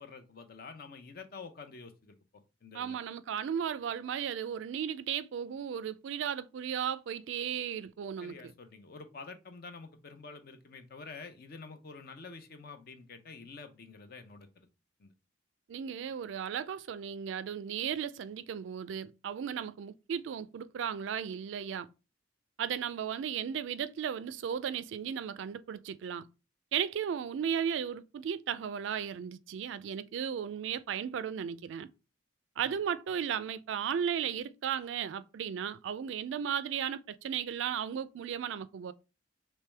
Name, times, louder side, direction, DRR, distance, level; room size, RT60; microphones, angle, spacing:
voice 1, 0.0-2.2 2.6-3.0 8.2-14.7 15.0-15.1 32.6-32.7, left 4 dB, 50° left, 0.6 m, -48 dB
voice 2, 2.7-8.5 15.7-21.9 22.6-26.3 26.7-31.9 32.6-38.9, right 8 dB, 70° right, 0.3 m, -35 dB
3.3 x 3.0 x 3.3 m
head